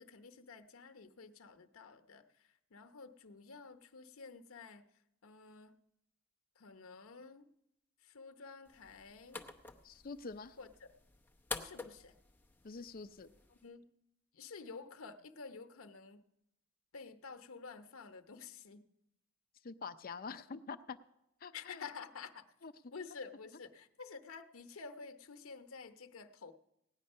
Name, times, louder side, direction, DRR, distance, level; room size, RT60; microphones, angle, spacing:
voice 1, 0.0-2.2 2.7-4.8 5.2-5.7 6.6-7.5 8.1-9.4 10.6-10.7 11.6-12.1 13.6-13.9 14.3-16.2 16.9-18.8 21.5-22.4 22.9-26.5, left 5 dB, 85° left, 9 dB, 0.8 m, -50 dB
sound 1, 8.7-13.7, left 3 dB, 10° left, 0.7 m, -49 dB
voice 2, 9.8-10.6 12.6-13.3 19.6-21.0 21.4-21.9 22.6-22.7 23.5-23.6, left 4 dB, 45° left, 11 dB, 0.5 m, -46 dB
17.0 x 9.5 x 5.4 m, 0.86 s
head